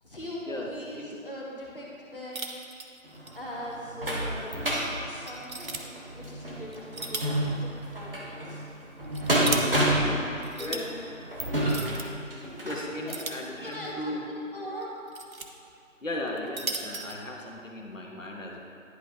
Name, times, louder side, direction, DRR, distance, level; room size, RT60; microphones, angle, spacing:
voice 1, 0.0-2.5 3.3-4.6 5.0-8.6 9.3-10.3 10.6-10.9 13.0-13.2 13.6-15.0, equal, 40° left, -5 dB, 1.2 m, -41 dB
sound 1, 2.3-3.4 3.7-3.8 4.4-4.5 5.3-5.8 6.7-7.4 7.8-7.9 8.8-9.6 10.4-10.8 11.6-12.1 13.1-13.9 14.8-15.5 16.3-17.2, right 3 dB, 85° right, 0.8 m, -36 dB
sound 2, 3.1-12.9 13.5-13.6 13.9-14.0, right 1 dB, 45° right, 1.1 m, -30 dB
voice 2, 9.4-10.3 10.6-10.9 12.6-14.2 16.0-18.6, left 1 dB, 70° left, 0 dB, 1.1 m, -36 dB
10.5 x 5.1 x 2.8 m, 2.6 s
figure-of-eight pair, 160°, 40 cm